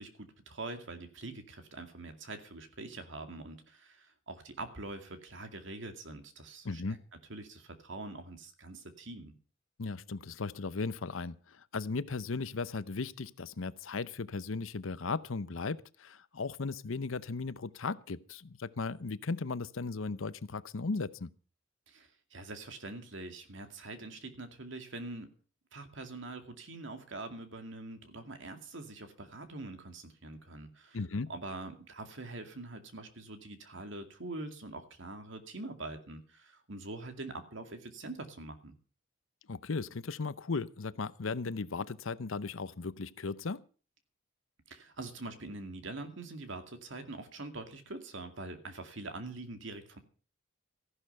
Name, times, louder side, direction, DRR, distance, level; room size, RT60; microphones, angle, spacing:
voice 1, 0.0-7.0 7.3-9.3 21.9-25.3 25.7-31.0 31.3-38.8 44.7-50.0, right 2 dB, 65° right, 2.3 m, -44 dB
voice 2, 6.6-7.0 9.8-21.3 30.9-31.3 39.5-43.6, left 4 dB, 75° left, 0.7 m, -36 dB
14.5 x 11.0 x 5.6 m
head